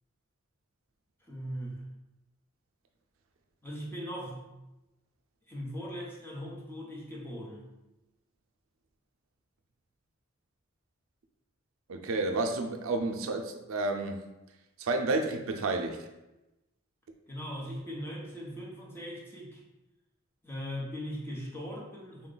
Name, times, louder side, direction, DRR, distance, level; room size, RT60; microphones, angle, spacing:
voice 1, 1.3-1.8 3.6-4.5 5.5-7.7 17.3-19.6 20.4-22.3, equal, 10° left, -4 dB, 0.8 m, -39 dB
voice 2, 11.9-14.2 14.8-16.0, right 2 dB, 85° right, 4 dB, 0.5 m, -30 dB
3.6 x 2.3 x 3.8 m, 0.98 s
head